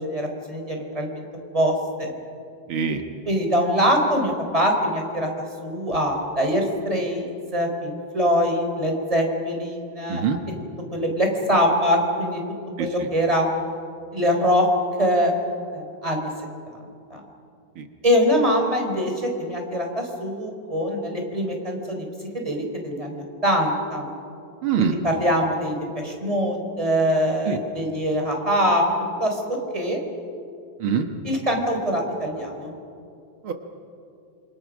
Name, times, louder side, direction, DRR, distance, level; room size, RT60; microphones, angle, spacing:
voice 1, 0.1-1.2 1.5-2.1 3.3-5.3 5.6-10.2 10.9-12.4 12.8-13.5 14.1-14.7 15.0-15.3 15.7-16.3 17.1-17.2 18.0-22.0 22.3-24.1 24.8-28.9 29.2-29.4 29.7-30.0 31.2-32.7, equal, 15° right, 2 dB, 3.9 m, -23 dB
voice 2, 2.7-3.0 10.1-10.4 12.8-13.1 17.8-17.9 24.6-25.0 27.5-27.6 30.8-31.1 33.4-33.5, right 7 dB, 85° right, 5 dB, 2.2 m, -24 dB
27.0 x 26.5 x 6.3 m, 2.5 s
omnidirectional pair, 2.2 m